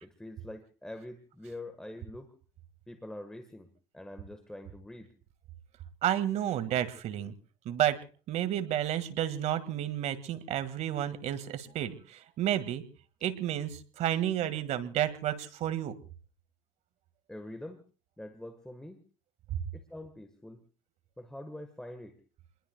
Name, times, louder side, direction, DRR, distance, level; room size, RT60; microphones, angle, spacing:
voice 1, 0.0-2.3 2.9-5.1 17.3-17.8 18.2-19.0 19.7-20.6 21.2-22.2, left 1 dB, 5° left, 7 dB, 1.4 m, -45 dB
voice 2, 6.0-7.3 7.7-12.8 13.2-16.0, right 11 dB, 50° right, 11 dB, 1.9 m, -31 dB
29.0 x 21.5 x 2.3 m, 0.37 s
cardioid pair, 135°, 15 cm